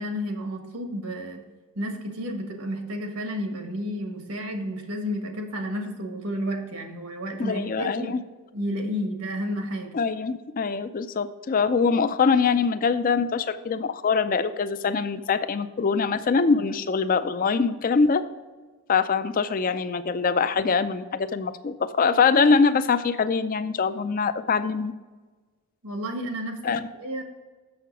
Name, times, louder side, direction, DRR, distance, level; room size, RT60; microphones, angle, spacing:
voice 1, 0.0-1.4 1.7-8.2 8.5-9.9 25.8-27.2, equal, 80° right, 4 dB, 1.4 m, -31 dB
voice 2, 7.4-8.2 9.9-18.2 18.9-24.9 26.6-26.8, left 5 dB, 40° left, 12 dB, 0.4 m, -23 dB
6.8 x 6.4 x 4.6 m, 1.3 s
head